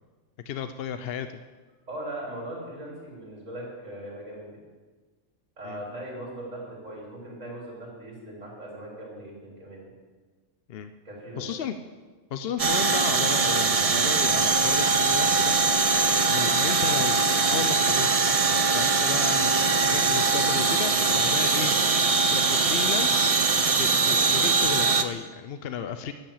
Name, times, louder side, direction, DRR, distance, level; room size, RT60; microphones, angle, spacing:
voice 1, 0.5-1.4 5.6-5.8 10.7-10.9 11.4-11.8 12.3-18.1 18.6-21.7 22.3-26.1, left 7 dB, 60° left, 9 dB, 0.7 m, -34 dB
voice 2, 1.9-4.6 5.6-9.9 11.0-11.5 21.2-21.4, right 1 dB, 80° right, -4 dB, 4.3 m, -39 dB
sound 1, 12.6-25.0, right 4 dB, 40° right, 0.6 m, -22 dB
12.0 x 8.8 x 7.2 m, 1.4 s
omnidirectional pair, 1.3 m